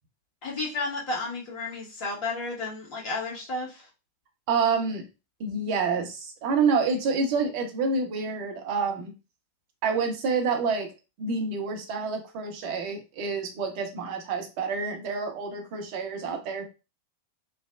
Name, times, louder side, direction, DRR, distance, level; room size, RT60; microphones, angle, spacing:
voice 1, 0.4-3.8, left 3 dB, 40° left, -3 dB, 1.4 m, -32 dB
voice 2, 4.5-5.0 5.4-9.1 9.8-10.9 11.2-16.6, right 4 dB, 45° right, 3 dB, 0.8 m, -28 dB
3.2 x 2.1 x 2.3 m, 0.30 s
figure-of-eight pair, 90°, 0 cm